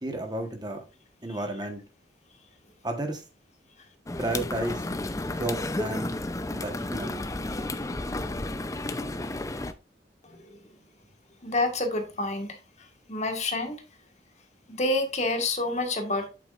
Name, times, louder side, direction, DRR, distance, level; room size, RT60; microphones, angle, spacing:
voice 1, 0.0-0.8 1.2-1.8 2.8-3.2 4.2-4.8 5.2-6.1 6.5-7.2, right 1 dB, 25° right, 1.2 m, -32 dB
sound 1, 4.1-9.7, left 2 dB, 20° left, 0.5 m, -32 dB
voice 2, 11.4-12.5 13.1-13.8 14.7-16.3, left 2 dB, 40° left, 1.6 m, -28 dB
8.4 x 7.4 x 2.5 m
head